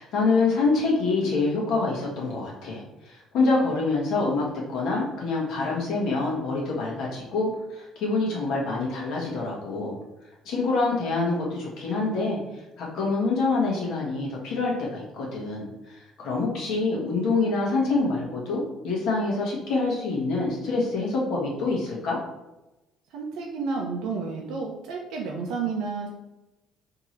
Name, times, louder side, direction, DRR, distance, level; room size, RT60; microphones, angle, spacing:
voice 1, 0.0-10.0 10.4-22.2, left 3 dB, 55° left, -3 dB, 1.4 m, -26 dB
voice 2, 23.1-26.1, right 4 dB, 75° right, -2 dB, 0.7 m, -31 dB
3.6 x 2.9 x 4.5 m, 0.98 s
cardioid pair, 180°, 0 cm